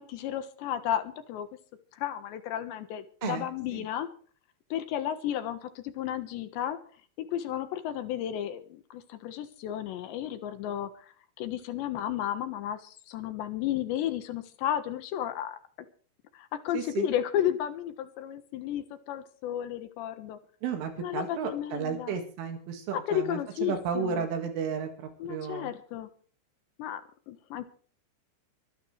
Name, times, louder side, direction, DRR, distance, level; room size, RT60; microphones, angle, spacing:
voice 1, 0.0-1.5 1.9-4.1 4.7-6.8 7.2-10.9 11.4-15.6 16.3-20.4 21.0-22.2 22.9-24.3 25.2-26.1 26.8-27.0 27.3-27.7, left 11 dB, 70° left, 9 dB, 3.2 m, -33 dB
voice 2, 3.2-3.9 16.7-17.1 20.6-25.7, right 7 dB, 75° right, 5 dB, 4.4 m, -33 dB
25.0 x 13.0 x 3.3 m, 0.43 s
omnidirectional pair, 5.8 m